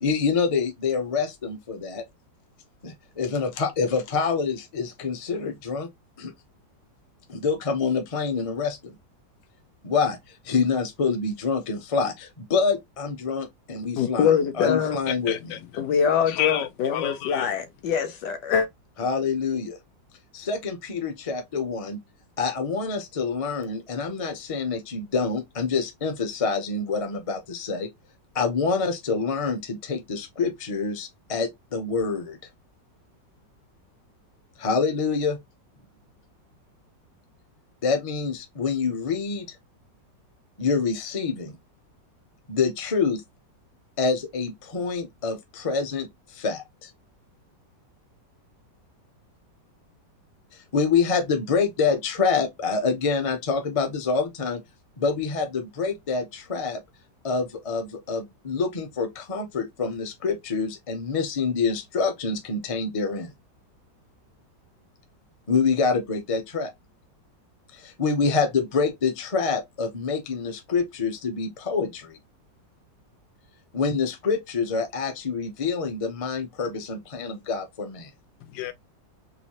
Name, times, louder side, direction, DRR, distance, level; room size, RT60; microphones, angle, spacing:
voice 1, 0.0-2.0 2.8-5.9 6.2-6.3 7.3-8.9 9.8-10.2 10.4-14.3 14.6-15.4 19.0-19.8 20.3-22.0 22.4-27.9 28.3-32.4 34.6-35.4 37.8-39.6 40.6-41.5 42.5-43.2 44.0-46.9 50.7-54.6 55.0-56.8 57.2-63.3 65.5-66.7 67.7-72.2 73.7-78.1, left 5 dB, 45° left, 0.4 m, -26 dB
voice 2, 14.0-15.0 15.8-18.7, left 7 dB, 70° left, 1.4 m, -23 dB
voice 3, 15.1-15.9 16.2-17.5 78.4-78.7, left 12 dB, 90° left, 1.4 m, -31 dB
4.0 x 2.7 x 3.0 m
omnidirectional pair, 2.0 m